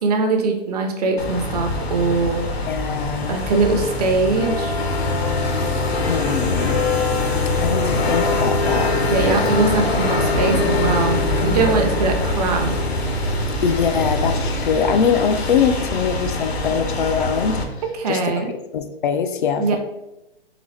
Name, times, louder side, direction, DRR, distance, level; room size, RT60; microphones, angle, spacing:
voice 1, 0.0-2.4 3.3-4.8 9.1-12.8 18.0-18.5 19.6-19.8, right 3 dB, 40° right, 4 dB, 0.6 m, -21 dB
sound 1, 1.2-17.6, left 2 dB, 85° left, 1.0 m, -22 dB
voice 2, 2.7-3.4 5.9-6.8 7.6-9.0 13.6-17.6 18.1-19.8, left 7 dB, 55° left, 7 dB, 0.4 m, -22 dB
3.9 x 3.4 x 3.2 m, 0.94 s
hypercardioid pair, 150°, 31 cm